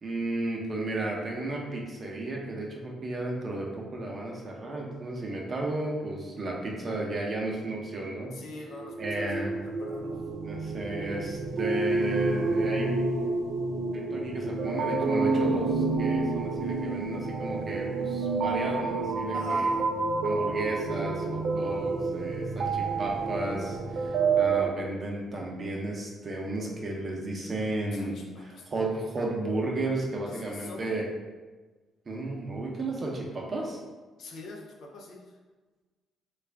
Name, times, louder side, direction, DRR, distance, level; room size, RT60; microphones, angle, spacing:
voice 1, 0.0-8.3 9.0-9.5 10.4-13.0 13.9-19.7 20.2-31.0 32.1-33.8, right 2 dB, 40° right, -2 dB, 0.8 m, -33 dB
voice 2, 8.3-10.3 19.3-19.9 27.9-28.6 30.3-30.9 34.2-35.2, left 2 dB, 70° left, 0 dB, 0.6 m, -43 dB
sound 1, 8.7-24.7, right 3 dB, 65° right, 0.3 m, -29 dB
3.3 x 2.4 x 3.4 m, 1.3 s
cardioid pair, 90°, 0 cm